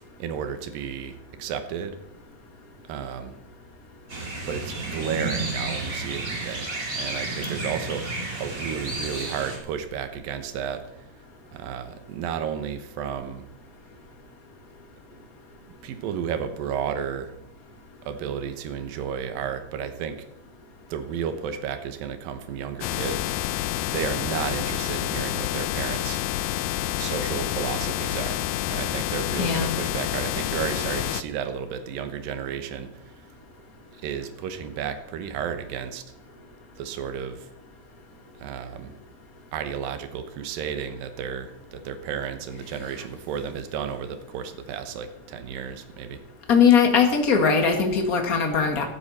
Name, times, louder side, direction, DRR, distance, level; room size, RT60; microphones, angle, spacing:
voice 1, 0.2-2.0 2.9-3.3 4.1-11.0 11.5-13.5 15.8-17.3 18.1-20.3 20.9-23.3 23.9-26.2 27.0-28.4 28.7-33.0 34.0-36.0 36.8-37.5 38.4-39.0 39.5-46.2, right 8 dB, 80° right, 9 dB, 2.9 m, -32 dB
sound 1, 4.1-9.6, right 2 dB, 25° right, 2.8 m, -31 dB
sound 2, 22.8-31.2, left 14 dB, 80° left, 2.3 m, -28 dB
voice 2, 29.3-29.7 46.5-48.8, left 6 dB, 35° left, 4 dB, 1.6 m, -20 dB
16.0 x 12.0 x 4.2 m, 0.86 s
omnidirectional pair, 4.0 m